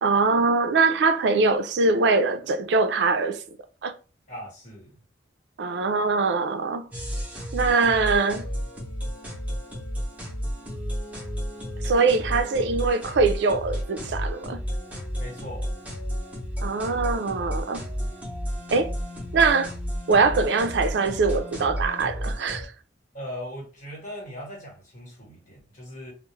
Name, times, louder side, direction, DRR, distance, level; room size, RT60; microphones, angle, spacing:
voice 1, 0.0-3.4 3.8-3.9 5.6-6.9 7.5-8.5 11.8-14.6 16.6-17.8 18.7-18.9 19.3-19.7 20.1-22.7, right 4 dB, 65° right, 0.4 m, -22 dB
voice 2, 4.3-5.0 15.2-15.7 23.1-26.1, equal, 45° left, 1.1 m, -39 dB
sound 1, 6.9-22.6, equal, 10° right, 0.7 m, -32 dB
2.3 x 2.0 x 3.0 m
head